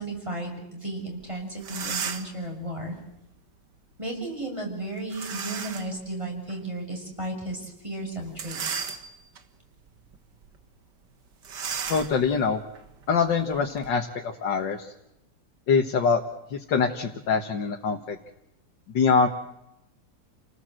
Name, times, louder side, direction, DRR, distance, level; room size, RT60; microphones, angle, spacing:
voice 1, 0.0-2.9 4.0-8.8, right 1 dB, 15° right, 0 dB, 6.9 m, -34 dB
sound 1, 1.2-1.3 1.6-2.4 5.1-6.0 6.5-6.6 8.3-9.4 10.0-10.2 10.4-10.6 11.4-13.9, right 6 dB, 65° right, 2.1 m, -35 dB
voice 2, 11.9-12.6 13.1-14.9 15.7-16.2 16.5-18.2 18.9-19.3, left 5 dB, 70° left, 3 dB, 2.1 m, -24 dB
30.0 x 19.0 x 7.8 m, 0.87 s
omnidirectional pair, 2.1 m